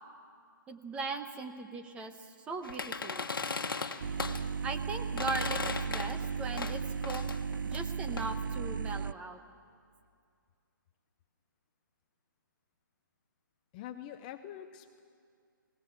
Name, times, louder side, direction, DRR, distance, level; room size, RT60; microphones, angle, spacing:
voice 1, 0.7-3.3 4.6-7.2 7.6-9.4, right 3 dB, 10° right, 7 dB, 0.9 m, -39 dB
sound 1, 2.6-4.5 5.1-6.3 6.5-8.3, left 4 dB, 85° left, 1.3 m, -37 dB
sound 2, 4.0-9.1, right 6 dB, 65° right, 0.5 m, -35 dB
voice 2, 13.7-15.0, left 11 dB, 20° left, 9 dB, 0.5 m, -45 dB
20.5 x 18.0 x 8.1 m, 2.3 s
hypercardioid pair, 150°, 11 cm